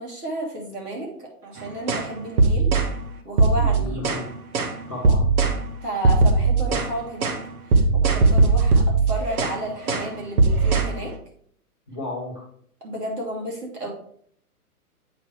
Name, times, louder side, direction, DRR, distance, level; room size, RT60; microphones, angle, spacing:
voice 1, 0.0-2.7 3.2-4.0 5.8-7.3 7.7-11.1 12.8-13.9, right 1 dB, 85° right, -1 dB, 3.1 m, -32 dB
sound 1, 1.9-2.1 2.4-2.9 3.4-4.2 4.5-4.7 5.0-5.6 6.0-6.9 7.2-7.4 7.7-9.6 9.9-10.1 10.4-10.9, right 3 dB, 65° right, 1.3 m, -19 dB
voice 2, 3.6-4.3 4.9-5.3 11.9-12.3, left 1 dB, 10° left, -6 dB, 0.3 m, -33 dB
8.0 x 5.8 x 3.2 m, 0.63 s
hypercardioid pair, 135°, 46 cm